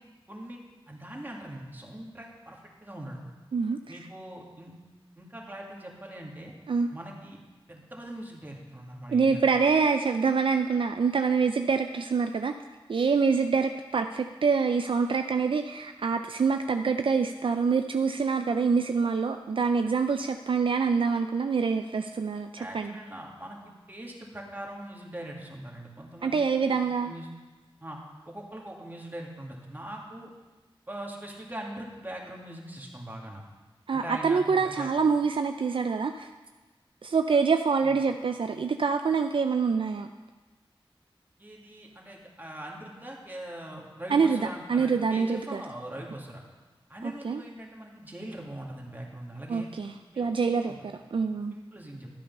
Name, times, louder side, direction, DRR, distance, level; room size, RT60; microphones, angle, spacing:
voice 1, 0.3-0.6 0.9-3.2 3.9-4.7 5.2-6.5 6.9-7.4 7.7-9.5 22.6-27.3 27.8-28.0 28.3-30.3 30.9-33.4 33.9-35.0 37.8-38.0 41.4-46.4 46.9-49.7 50.1-50.8 51.1-51.2 51.5-52.1, right 1 dB, 20° right, -1 dB, 2.1 m, -42 dB
voice 2, 3.5-4.0 6.7-6.9 9.1-12.5 12.9-22.9 26.2-27.1 33.9-36.3 37.0-40.1 44.1-44.4 44.7-45.6 47.0-47.4 49.5-50.7 51.1-51.5, right 5 dB, 65° right, 6 dB, 0.4 m, -26 dB
12.0 x 8.5 x 5.4 m, 1.2 s
wide cardioid pair, 90°, 9 cm